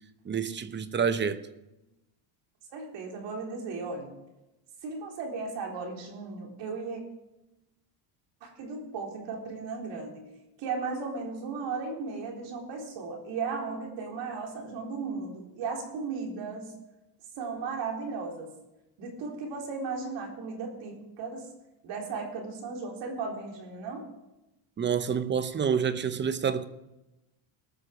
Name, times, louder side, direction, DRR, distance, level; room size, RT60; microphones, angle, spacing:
voice 1, 0.3-1.5 24.8-26.7, right 7 dB, 25° right, 0.8 m, -28 dB
voice 2, 2.7-4.1 4.8-7.0 8.4-10.3 10.6-16.7 17.4-18.5 19.0-21.5 21.8-24.1, right 4 dB, 60° right, 3.9 m, -36 dB
18.5 x 6.6 x 6.4 m
supercardioid pair, 115°, 48 cm